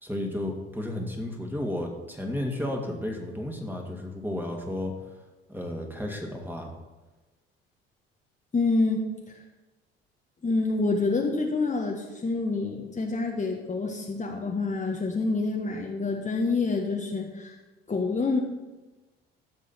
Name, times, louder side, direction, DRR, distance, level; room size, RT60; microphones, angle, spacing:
voice 1, 0.0-4.9 5.5-6.7, left 1 dB, 5° right, 1 dB, 2.5 m, -33 dB
voice 2, 8.5-9.0 10.4-17.5 17.9-18.4, left 3 dB, 25° left, 0 dB, 1.5 m, -27 dB
14.5 x 7.3 x 4.5 m, 1.1 s
figure-of-eight pair, 55°, 30 cm